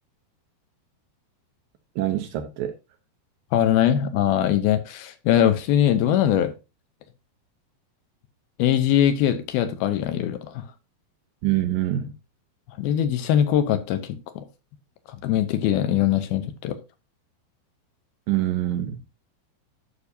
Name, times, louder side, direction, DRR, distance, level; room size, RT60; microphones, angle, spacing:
voice 1, 2.0-2.7 11.4-12.1 18.3-19.0, right 13 dB, 75° right, 2.2 m, -25 dB
voice 2, 3.5-6.5 8.6-10.6 12.8-14.4 15.1-16.8, left 10 dB, 80° left, 2.5 m, -22 dB
11.5 x 6.7 x 2.7 m
omnidirectional pair, 4.6 m